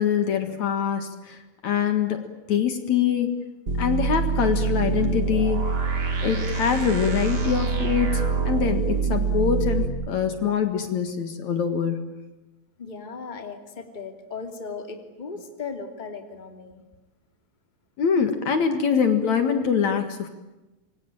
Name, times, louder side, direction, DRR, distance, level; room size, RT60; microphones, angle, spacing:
voice 1, 0.0-1.4 1.6-3.4 3.8-5.6 6.2-12.1 18.0-20.3, left 7 dB, 60° left, 7 dB, 2.9 m, -24 dB
sound 1, 3.7-9.9, right 5 dB, 30° right, 2.8 m, -25 dB
voice 2, 12.8-16.8, left 5 dB, 15° left, 5 dB, 2.5 m, -37 dB
27.0 x 24.0 x 8.9 m, 1.1 s
omnidirectional pair, 3.9 m